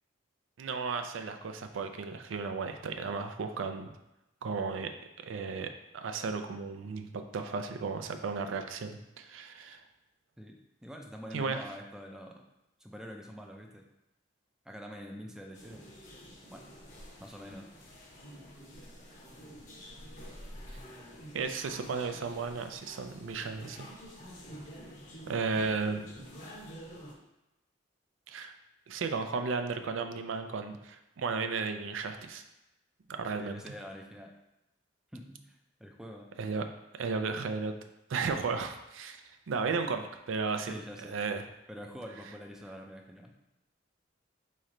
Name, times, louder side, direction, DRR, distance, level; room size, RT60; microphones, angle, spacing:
voice 1, 0.6-3.9 4.4-9.8 11.3-11.6 21.3-23.9 25.3-26.1 28.3-28.5 28.9-32.4 33.1-33.6 36.4-36.7 36.9-37.7 38.1-40.8 41.1-41.4, right 4 dB, 80° right, 7 dB, 0.4 m, -34 dB
voice 2, 10.4-12.4 12.8-13.8 14.7-15.9 16.5-16.7 17.2-17.7 33.4-34.3 35.1-36.3 40.7-41.2 41.7-43.4, equal, 5° right, 1 dB, 0.4 m, -46 dB
sound 1, 15.5-27.1, equal, 40° left, 0.8 m, -49 dB
4.2 x 3.2 x 3.7 m, 0.92 s
head